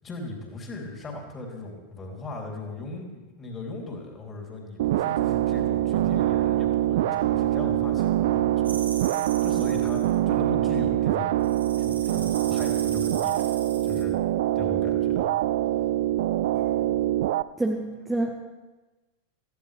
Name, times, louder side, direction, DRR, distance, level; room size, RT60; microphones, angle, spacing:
voice 1, 0.0-11.3 11.8-14.1 14.5-15.3, left 2 dB, 20° left, 0 dB, 3.2 m, -38 dB
sound 1, 4.8-17.4, right 14 dB, 55° right, 0.4 m, -24 dB
sound 2, 8.6-10.2 11.4-14.0, right 5 dB, 70° right, 1.5 m, -39 dB
voice 2, 17.6-18.3, right 2 dB, 10° right, 1 dB, 1.1 m, -27 dB
17.5 x 15.0 x 3.4 m, 1.2 s
figure-of-eight pair, 90°, 0 cm